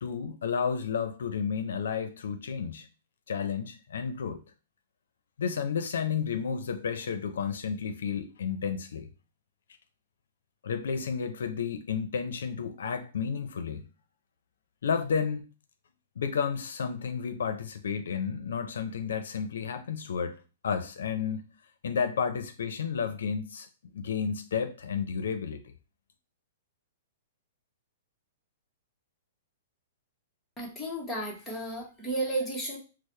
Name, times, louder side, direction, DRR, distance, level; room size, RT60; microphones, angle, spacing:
voice 1, 0.0-2.9 3.3-4.4 5.4-9.1 10.6-13.9 14.8-15.4 16.2-20.4 20.6-21.5 21.8-23.7 23.9-25.6, left 6 dB, 85° left, 0.5 m, -31 dB
voice 2, 30.6-32.8, right 2 dB, 5° left, 0.9 m, -33 dB
4.5 x 2.0 x 3.1 m
hypercardioid pair, 160°, 0 cm